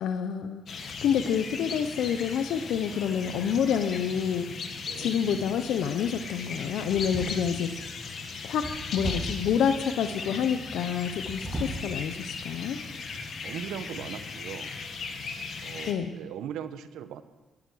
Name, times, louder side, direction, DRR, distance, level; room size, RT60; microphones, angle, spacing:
voice 1, 0.0-4.5 5.0-7.7 8.4-12.8 15.9-16.1, left 8 dB, 80° left, 8 dB, 0.7 m, -28 dB
sound 1, 0.7-15.9, left 5 dB, 55° left, 1.6 m, -38 dB
voice 2, 4.9-5.2 13.4-14.7 15.6-17.2, right 9 dB, 85° right, 11 dB, 0.9 m, -39 dB
sound 2, 5.4-5.8 6.8-7.7 8.6-9.5 11.1-11.9 12.4-12.6 13.1-13.2, right 1 dB, 10° right, 6.0 m, -36 dB
13.0 x 11.5 x 6.2 m, 1.2 s
cardioid pair, 90°, 0 cm